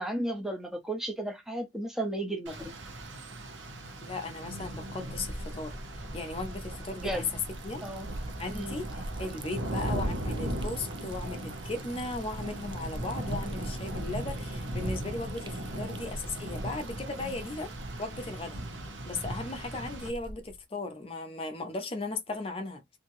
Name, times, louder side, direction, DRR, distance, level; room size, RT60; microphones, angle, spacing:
voice 1, 0.0-2.7 6.9-7.3 7.8-8.1 8.5-8.7, right 1 dB, ahead, 0.7 m, -34 dB
Rain, 2.5-20.1, right 1 dB, 85° right, 1.0 m, -38 dB
voice 2, 4.0-5.7 6.1-7.2 7.6-7.8 8.4-17.7 18.0-18.6 19.0-22.8, left 2 dB, 30° left, 0.6 m, -37 dB
Liquid, 4.6-20.6, right 1 dB, 25° right, 0.3 m, -43 dB
2.8 x 2.7 x 2.5 m
head